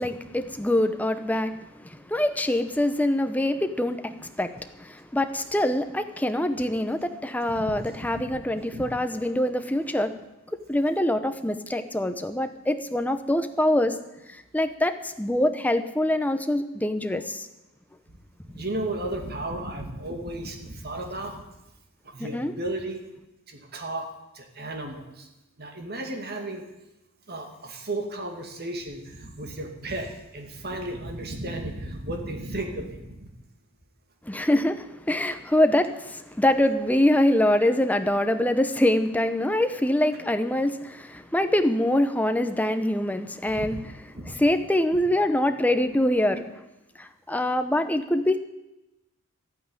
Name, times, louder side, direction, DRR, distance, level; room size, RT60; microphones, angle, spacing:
voice 1, 0.0-1.5 2.1-4.5 5.1-10.2 10.7-14.0 14.5-17.5 22.3-22.5 34.3-35.9 36.4-43.8 44.4-46.4 47.3-48.4, left 1 dB, 5° left, 8 dB, 0.8 m, -24 dB
voice 2, 7.4-8.8 18.6-21.4 22.0-23.0 23.5-24.1 24.3-25.3 25.6-26.6 27.3-33.3 37.6-37.7 43.5-43.7 44.1-44.5, right 1 dB, 45° right, 4 dB, 2.3 m, -34 dB
12.0 x 9.2 x 9.7 m, 0.96 s
head